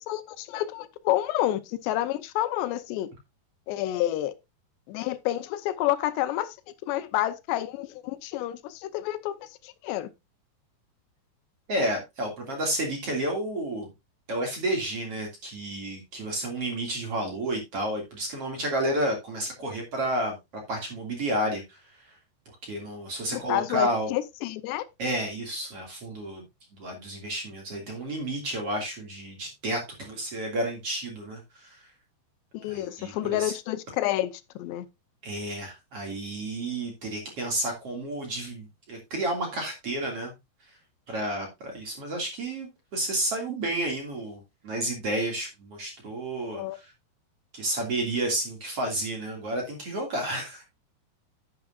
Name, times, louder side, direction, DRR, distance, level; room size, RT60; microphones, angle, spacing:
voice 1, 0.1-3.1 3.7-4.3 4.9-6.6 6.9-10.1 23.3-24.8 32.5-34.3 34.6-34.9 46.5-46.8, left 14 dB, 80° left, 2.8 m, -29 dB
voice 2, 11.7-13.9 14.3-20.3 20.7-22.2 22.6-24.1 25.0-26.4 26.7-31.9 32.7-33.5 35.2-40.3 40.7-40.8 41.1-46.9 47.5-50.6, right 1 dB, 45° right, 2.5 m, -31 dB
11.0 x 9.4 x 2.4 m
omnidirectional pair, 5.0 m